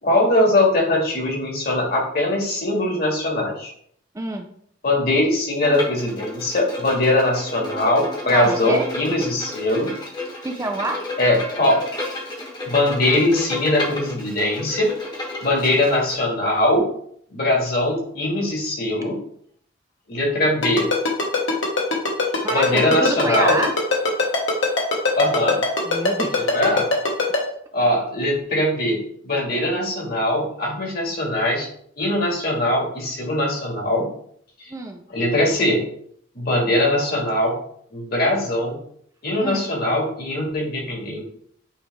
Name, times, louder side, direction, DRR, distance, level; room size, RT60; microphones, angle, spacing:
voice 1, 0.0-3.7 4.8-9.9 11.2-11.8 12.6-14.9 15.4-16.8 17.3-19.2 20.1-20.9 22.5-23.6 25.2-25.6 26.5-26.9 27.7-31.7 32.0-34.0 35.1-35.8 36.4-37.6 37.9-38.8 39.2-41.2, left 1 dB, 50° left, -1 dB, 1.9 m, -21 dB
voice 2, 4.1-4.5 8.3-8.9 10.4-11.1 22.4-23.8 25.8-26.5 34.7-35.0 39.4-39.7, right 2 dB, 15° right, 4 dB, 0.4 m, -27 dB
Bowed string instrument, 5.6-16.1, left 2 dB, 20° left, 1.2 m, -32 dB
Ringtone, 20.6-27.4, left 3 dB, 80° left, 1.5 m, -20 dB
8.4 x 3.2 x 3.4 m, 0.64 s
head